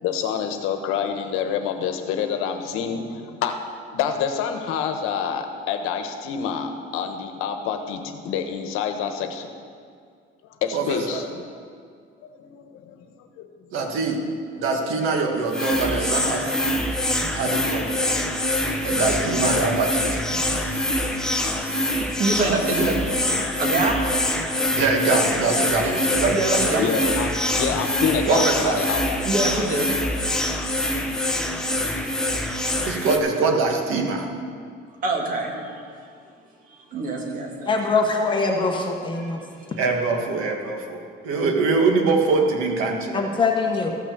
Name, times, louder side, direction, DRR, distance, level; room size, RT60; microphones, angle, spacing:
voice 1, 0.0-3.6 3.9-9.5 10.6-11.3 12.2-13.1 13.4-13.5 17.5-17.8 19.2-19.6 21.4-21.5 25.3-25.4 26.8-29.2, left 7 dB, 80° left, 6 dB, 1.1 m, -27 dB
voice 2, 10.7-11.2 13.7-14.2 14.6-16.5 17.3-17.9 18.8-20.2 24.8-26.8 28.3-28.8 32.9-34.2 39.8-43.3, right 3 dB, 75° right, 2 dB, 1.7 m, -23 dB
sound 1, 15.5-33.2, left 1 dB, 5° left, 0.7 m, -24 dB
voice 3, 20.3-21.5 21.8-23.0 23.6-24.0 25.8-26.9 29.2-29.9 32.4-32.6 35.0-35.8 36.9-37.7 39.2-39.3 39.6-39.7, right 2 dB, 40° right, 0 dB, 1.9 m, -27 dB
voice 4, 37.7-39.4 43.1-43.9, left 4 dB, 20° left, 2 dB, 1.1 m, -22 dB
14.0 x 6.2 x 7.0 m, 2.2 s
cardioid pair, 175°, 21 cm